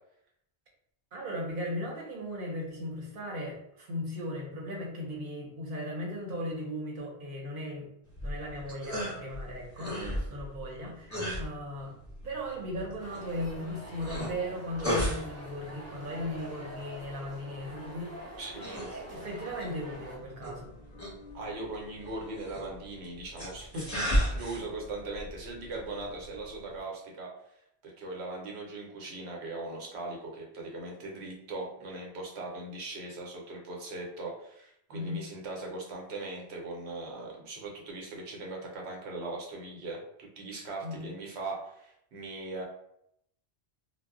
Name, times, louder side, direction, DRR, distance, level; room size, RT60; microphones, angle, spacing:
voice 1, 1.1-7.9 8.2-11.9 12.2-18.4 18.9-20.7 34.9-35.2 40.8-41.0, left 1 dB, 60° right, -2 dB, 0.9 m, -37 dB
sound 1, 8.1-26.8, equal, 20° left, 0.7 m, -37 dB
sound 2, 13.0-20.2, right 1 dB, 25° right, 0.3 m, -45 dB
sound 3, 15.9-22.5, left 2 dB, 50° left, 0.6 m, -55 dB
voice 2, 18.4-19.0 21.3-27.3 27.8-42.6, right 2 dB, 90° right, -1 dB, 1.0 m, -40 dB
2.1 x 2.1 x 3.6 m, 0.75 s
omnidirectional pair, 1.1 m